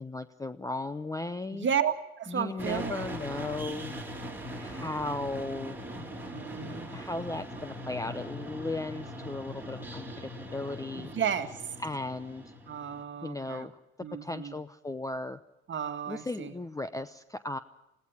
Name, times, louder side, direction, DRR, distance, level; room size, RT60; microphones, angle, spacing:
voice 1, 0.0-1.7 2.3-4.0 4.6-5.8 6.7-11.1 11.8-12.5 13.2-13.8 14.2-15.4 16.1-17.6, left 2 dB, 10° left, 13 dB, 0.8 m, -36 dB
voice 2, 1.5-3.1 6.0-6.9 11.0-11.6 12.7-13.7 14.0-14.6 15.7-16.5, right 8 dB, 35° right, 7 dB, 1.9 m, -33 dB
sound 1, 2.6-13.0, equal, 5° right, 3.5 m, -41 dB
20.0 x 16.5 x 9.6 m, 0.87 s
hypercardioid pair, 80°, 33 cm